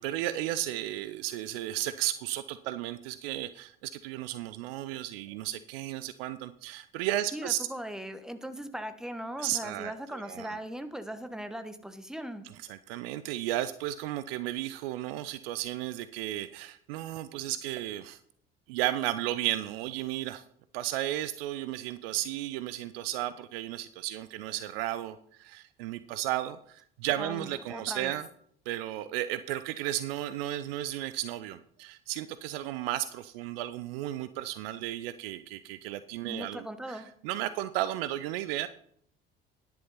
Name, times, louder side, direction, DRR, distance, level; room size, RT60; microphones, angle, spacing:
voice 1, 0.0-7.7 9.4-10.5 12.4-18.2 18.7-20.4 20.7-28.3 28.7-38.7, right 14 dB, 70° right, 14 dB, 0.5 m, -34 dB
voice 2, 7.3-12.4 27.2-28.1 36.3-37.1, equal, ahead, 9 dB, 1.2 m, -39 dB
11.0 x 7.1 x 5.5 m, 0.64 s
figure-of-eight pair, 55°, 30 cm